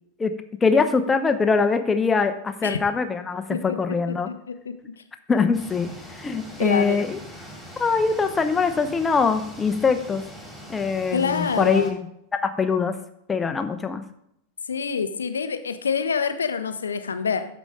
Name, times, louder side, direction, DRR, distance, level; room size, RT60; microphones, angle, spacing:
voice 1, 0.2-4.3 5.3-7.2 7.8-10.2 10.7-12.0 12.3-12.9 13.3-14.0, left 5 dB, 15° left, 8 dB, 0.8 m, -23 dB
voice 2, 4.1-4.7 6.6-7.0 11.1-11.9 14.7-17.5, left 6 dB, 70° left, 9 dB, 0.7 m, -26 dB
sound 1, 5.5-11.9, equal, ahead, 2.4 m, -42 dB
13.5 x 5.1 x 3.6 m, 0.76 s
figure-of-eight pair, 90°, 0 cm